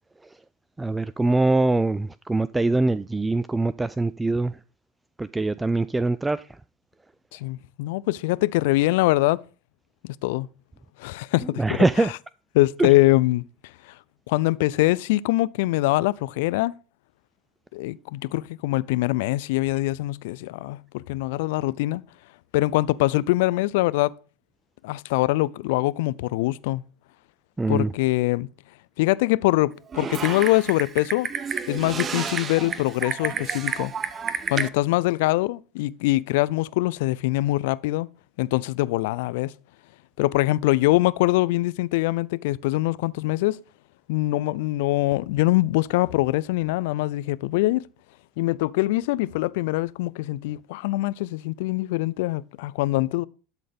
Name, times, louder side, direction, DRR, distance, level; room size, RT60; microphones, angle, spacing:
voice 1, 0.8-4.6 5.2-6.5 11.6-12.1 12.8-12.9 27.6-27.9, right 2 dB, 10° right, 0.3 m, -23 dB
voice 2, 7.3-9.4 10.0-10.5 11.0-12.1 12.5-13.4 14.3-16.7 17.7-22.0 22.5-24.1 24.8-26.8 27.7-28.5 29.0-31.3 31.7-33.9 34.5-38.1 38.4-39.5 40.2-43.6 44.1-47.8 48.4-53.2, left 19 dB, 70° left, 0.3 m, -23 dB
Typing, 29.9-34.7, right 6 dB, 35° right, 0.7 m, -30 dB
12.5 x 4.1 x 5.1 m
hypercardioid pair, 80°, 0 cm